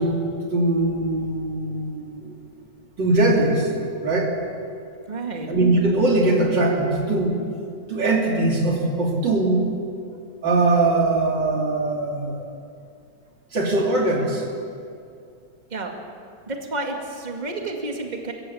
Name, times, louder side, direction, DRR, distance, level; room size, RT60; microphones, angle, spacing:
voice 1, 0.0-2.4 3.0-3.7 4.0-4.4 5.5-7.4 7.9-9.7 10.4-12.5 13.5-14.4, right 2 dB, 90° right, 0 dB, 3.7 m, -21 dB
voice 2, 5.1-5.5 15.7-16.0 16.5-18.3, right 2 dB, 25° right, 2 dB, 2.2 m, -30 dB
23.5 x 15.0 x 8.5 m, 2.4 s
omnidirectional pair, 1.9 m